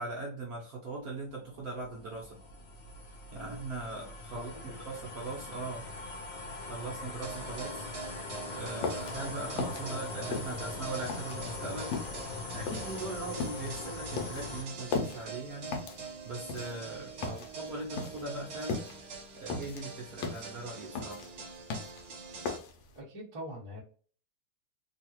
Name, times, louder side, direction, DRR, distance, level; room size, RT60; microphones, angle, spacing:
voice 1, 0.0-2.4 3.3-4.5 4.8-5.9 6.7-7.9 8.5-12.0 12.5-15.8 16.2-17.1 17.6-18.8 19.4-21.2, right 3 dB, 70° right, -2 dB, 0.8 m, -40 dB
sound 1, 1.1-14.6, left 3 dB, 90° left, 0.7 m, -41 dB
voice 2, 4.3-4.8 9.8-10.0 17.2-17.4 22.9-23.8, right 1 dB, 35° right, -5 dB, 0.5 m, -43 dB
sound 2, 7.2-22.6, right 5 dB, 55° right, 1.3 m, -45 dB
sound 3, 8.6-23.0, left 4 dB, 75° left, 1.3 m, -38 dB
3.2 x 2.4 x 2.9 m, 0.44 s
omnidirectional pair, 2.3 m